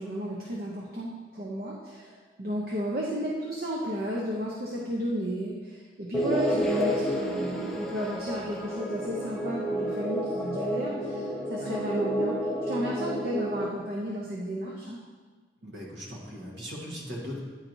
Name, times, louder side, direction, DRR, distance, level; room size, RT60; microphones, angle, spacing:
voice 1, 0.0-15.0, equal, 50° right, -3 dB, 0.7 m, -33 dB
sound 1, 6.1-13.7, equal, 5° left, 0.5 m, -30 dB
voice 2, 15.6-17.4, equal, 75° right, -3 dB, 1.3 m, -39 dB
9.5 x 4.4 x 2.7 m, 1.4 s
head